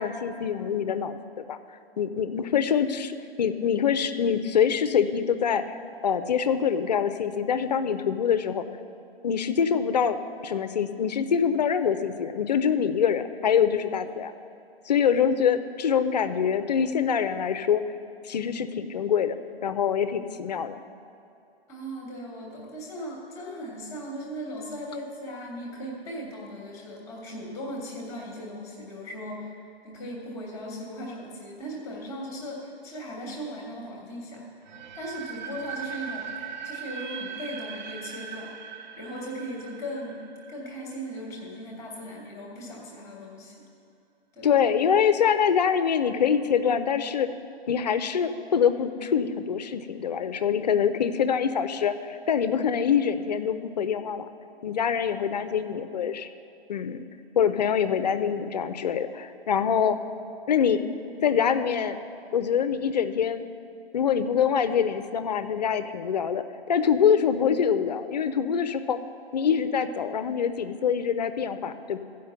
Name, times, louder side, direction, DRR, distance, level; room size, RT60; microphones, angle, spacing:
voice 1, 0.0-1.6 2.0-8.7 9.2-10.2 10.4-14.3 14.9-17.8 18.2-20.8 44.4-47.3 47.7-54.3 54.6-56.3 56.7-57.0 57.4-60.0 60.5-60.8 61.2-62.0 62.3-63.4 63.9-69.0 69.3-72.0, left 7 dB, 45° left, 11 dB, 0.4 m, -25 dB
voice 2, 21.7-29.5 29.8-34.4 34.9-36.3 36.6-38.5 39.0-40.2 40.5-43.5 44.3-44.5, equal, 10° left, -2 dB, 1.1 m, -38 dB
sound 1, 34.6-41.5, right 7 dB, 45° right, 0.7 m, -40 dB
13.5 x 5.1 x 6.8 m, 2.5 s
hypercardioid pair, 150°, 31 cm